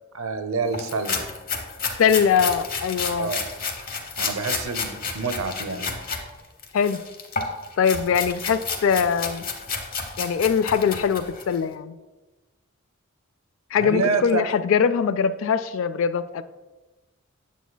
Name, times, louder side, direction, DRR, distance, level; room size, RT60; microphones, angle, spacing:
voice 1, 0.1-1.2 3.2-3.4 4.2-6.0 13.8-14.4, right 4 dB, 75° right, 8 dB, 0.6 m, -27 dB
sound 1, 0.7-6.2 6.6-11.6, left 5 dB, 40° left, 0.8 m, -31 dB
voice 2, 2.0-3.3 6.7-7.0 7.8-9.5 10.2-11.9 13.7-16.4, left 7 dB, 65° left, 14 dB, 0.3 m, -22 dB
9.2 x 7.1 x 2.2 m, 1.2 s
head